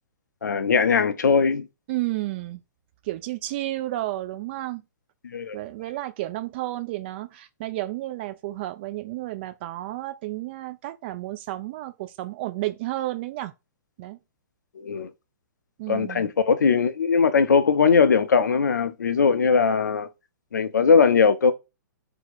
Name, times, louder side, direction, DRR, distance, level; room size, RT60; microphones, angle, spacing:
voice 1, 0.4-1.7 5.3-5.6 14.8-15.1 15.9-20.1 20.5-21.5, left 5 dB, 70° left, 0.5 m, -20 dB
voice 2, 1.9-2.6 3.0-4.8 5.5-13.5 14.0-14.2 15.8-16.3, right 16 dB, 35° right, 0.3 m, -32 dB
2.7 x 2.1 x 4.1 m
figure-of-eight pair, 115°, 10 cm